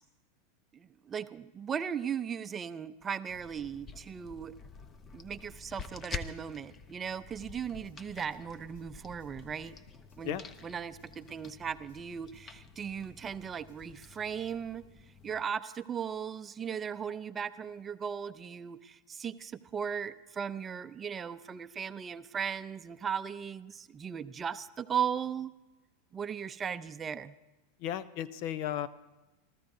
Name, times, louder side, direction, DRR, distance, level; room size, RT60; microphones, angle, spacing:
voice 1, 0.7-4.5 5.1-9.8 10.2-10.4 10.6-14.8 15.2-25.5 26.1-27.3, right 7 dB, 25° right, 12 dB, 0.6 m, -37 dB
sound 1, 3.3-15.4, left 5 dB, 25° left, 0.9 m, -48 dB
sound 2, 7.2-14.2, left 1 dB, 80° left, 2.2 m, -63 dB
voice 2, 27.8-28.9, left 11 dB, 55° left, 16 dB, 0.7 m, -34 dB
28.0 x 14.0 x 2.7 m, 1.1 s
hypercardioid pair, 100°, 0 cm